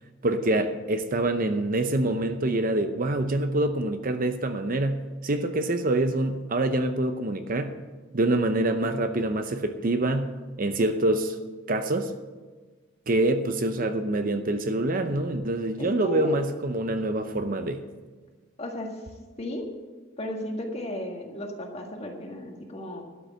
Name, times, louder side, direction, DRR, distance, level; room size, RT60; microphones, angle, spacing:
voice 1, 0.2-7.8 8.1-11.4 11.7-12.1 13.1-17.8, right 2 dB, 45° right, 8 dB, 0.7 m, -26 dB
voice 2, 15.8-16.4 18.6-19.0 19.4-19.7 20.2-23.0, left 1 dB, 30° left, 2 dB, 1.7 m, -34 dB
12.0 x 6.5 x 8.5 m, 1.3 s
head